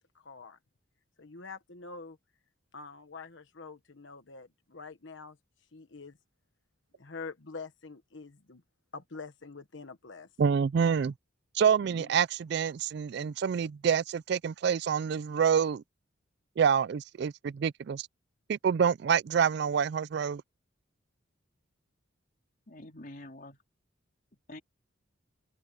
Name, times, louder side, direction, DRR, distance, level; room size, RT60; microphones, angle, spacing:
voice 1, 0.1-0.6 1.2-2.2 2.7-5.4 5.7-6.1 7.0-8.6 8.9-10.3, left 4 dB, 65° left, 1.2 m, -45 dB
voice 2, 10.4-11.1 11.5-15.8 16.6-18.1 18.5-20.4, right 7 dB, 55° right, 0.3 m, -27 dB
voice 3, 11.8-12.1 22.7-23.6 24.5-24.6, left 1 dB, 45° left, 3.5 m, -47 dB
open air
head